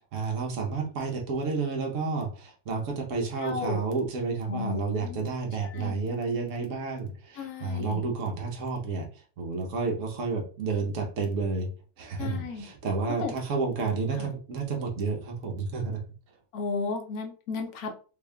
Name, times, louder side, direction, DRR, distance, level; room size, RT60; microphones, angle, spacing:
voice 1, 0.1-9.1 9.4-11.7 12.0-16.0, right 4 dB, 55° right, 2 dB, 0.9 m, -30 dB
voice 2, 3.4-3.8 4.5-5.3 5.6-6.1 7.4-8.0 12.2-12.7 13.2-13.3 14.2-14.3 16.5-17.9, left 4 dB, 65° left, 4 dB, 0.9 m, -34 dB
4.0 x 3.5 x 2.3 m, 0.37 s
omnidirectional pair, 2.3 m